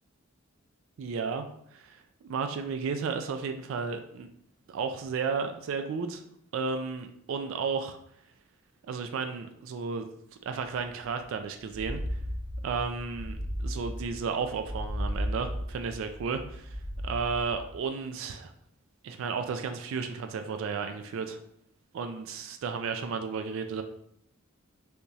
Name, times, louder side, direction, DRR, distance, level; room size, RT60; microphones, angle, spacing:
voice 1, 1.0-1.5 1.7-4.3 4.7-6.2 6.5-8.0 8.9-10.1 10.5-12.0 12.6-16.7 17.0-18.5 19.0-21.4 21.9-23.8, right 5 dB, 65° right, 7 dB, 0.3 m, -33 dB
sound 1, 11.7-17.8, equal, 35° right, 0.7 m, -35 dB
3.4 x 2.9 x 2.7 m, 0.72 s
head